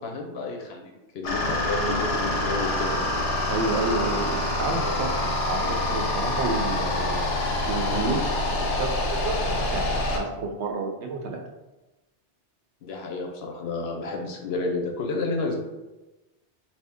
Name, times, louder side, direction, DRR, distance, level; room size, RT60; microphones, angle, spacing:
voice 1, 0.0-3.0 12.8-15.5, left 3 dB, 70° left, 1 dB, 0.8 m, -30 dB
sound 1, 1.2-10.2, left 2 dB, 90° left, 1.0 m, -26 dB
voice 2, 3.5-11.4, right 3 dB, 75° right, 2 dB, 0.9 m, -30 dB
2.8 x 2.6 x 3.5 m, 1.1 s
omnidirectional pair, 1.2 m